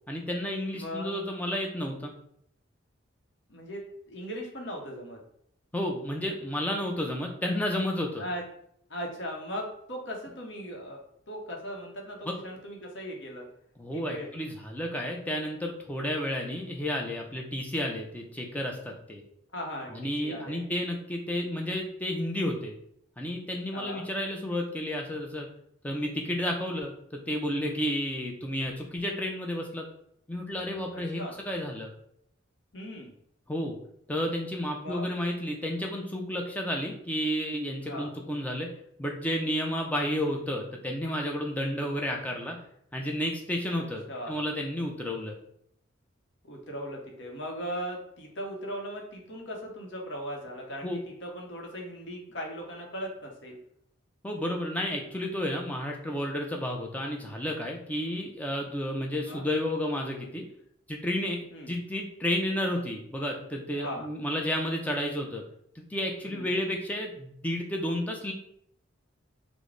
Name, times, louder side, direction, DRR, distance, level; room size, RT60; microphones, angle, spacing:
voice 1, 0.1-2.1 5.7-8.2 12.3-12.4 13.8-19.2 19.9-22.7 23.2-25.5 25.8-29.9 30.3-31.9 33.5-33.8 34.1-38.7 39.0-42.6 42.9-45.4 50.8-51.0 54.2-60.5 60.9-61.4 61.7-65.4 65.8-68.3, left 1 dB, 10° left, 1 dB, 0.4 m, -31 dB
voice 2, 0.7-1.2 3.5-5.2 8.2-8.4 8.9-11.0 11.3-13.5 13.9-14.3 19.5-20.6 23.7-24.1 30.9-31.3 32.7-33.1 34.7-35.1 37.8-38.1 43.7-44.4 46.4-53.6 59.3-59.5 61.5-61.7 63.7-64.1 66.2-66.6, equal, 65° left, 0 dB, 0.8 m, -38 dB
3.2 x 2.1 x 3.7 m, 0.69 s
head